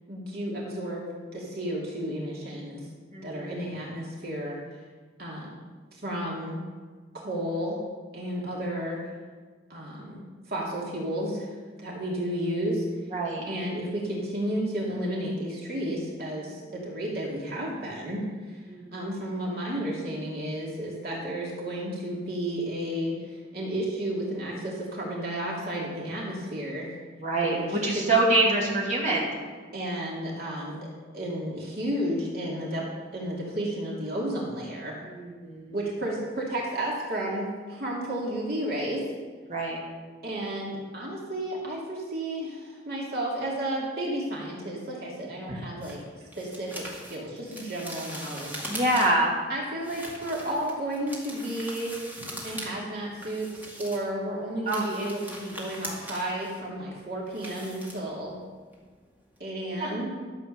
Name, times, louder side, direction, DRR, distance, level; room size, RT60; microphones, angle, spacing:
voice 1, 0.1-1.0 1.3-2.8 3.2-4.6 5.2-5.7 5.9-6.6 7.1-7.8 8.1-9.0 9.7-10.2 10.5-11.5 11.8-12.8 13.5-18.6 18.9-26.9 27.4-28.1 29.7-30.8 31.1-32.8 33.1-34.9 35.7-39.0 40.2-46.0 46.4-48.6 49.5-51.9 52.4-58.4 59.4-60.1, right 1 dB, 55° right, -4 dB, 2.6 m, -32 dB
voice 2, 3.1-3.6 13.1-13.4 18.7-19.1 27.2-29.3 35.0-35.8 39.5-39.8 45.5-45.6 48.7-49.3 54.7-54.9 59.8-59.9, right 2 dB, 40° right, -4 dB, 2.6 m, -26 dB
sound 1, 45.8-49.3 49.8-52.7 53.0-54.1 54.5-58.4 58.7-59.0 59.3-59.4, equal, 10° right, 2.1 m, -41 dB
13.0 x 7.6 x 6.7 m, 1.5 s
head